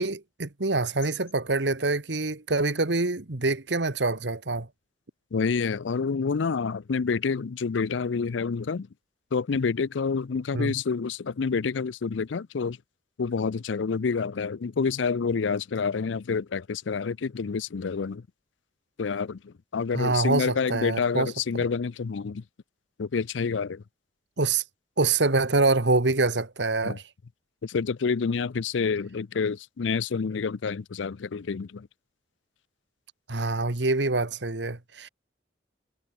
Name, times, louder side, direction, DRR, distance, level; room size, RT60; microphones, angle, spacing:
voice 1, 0.0-4.7 10.5-10.7 19.9-21.6 24.4-24.6 25.0-27.0 33.3-35.1, right 3 dB, 75° right, 1.6 m, -25 dB
voice 2, 5.3-8.9 9.3-12.8 13.2-18.2 19.0-22.4 23.0-23.8 26.8-27.0 27.6-31.9, left 5 dB, 85° left, 0.5 m, -28 dB
head